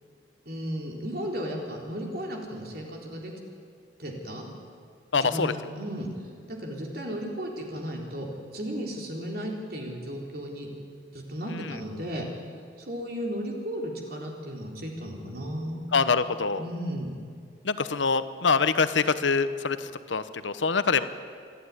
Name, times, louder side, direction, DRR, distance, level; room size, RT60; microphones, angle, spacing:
voice 1, 0.5-3.3 4.0-4.5 5.2-6.1 6.5-10.7 11.1-12.2 12.8-16.1 16.6-17.2, equal, 55° right, 0 dB, 3.8 m, -35 dB
voice 2, 5.1-5.5 11.5-11.7 15.9-16.6 17.6-21.0, left 5 dB, 80° left, 12 dB, 1.0 m, -25 dB
27.5 x 11.5 x 9.7 m, 2.2 s
head